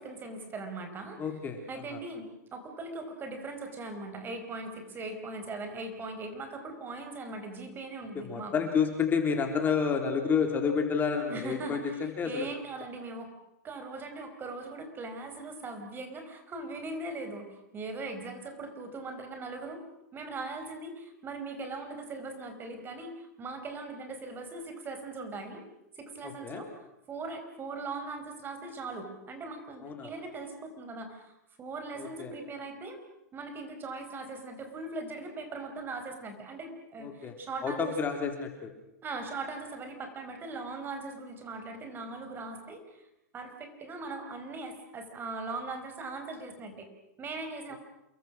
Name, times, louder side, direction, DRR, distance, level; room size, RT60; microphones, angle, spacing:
voice 1, 0.0-1.2 1.7-8.5 11.3-13.3 13.6-17.5 17.7-19.8 20.1-25.6 26.0-31.2 31.6-33.0 33.3-38.2 39.0-43.0 43.3-46.9 47.2-47.7, right 3 dB, 25° right, 6 dB, 4.9 m, -40 dB
voice 2, 1.2-1.6 1.9-2.0 8.2-12.5 26.2-26.6 29.8-30.1 32.0-32.3 37.0-37.3 37.6-38.7, left 6 dB, 20° left, 4 dB, 3.7 m, -30 dB
29.0 x 22.0 x 6.3 m, 0.86 s
hypercardioid pair, 120°, 9 cm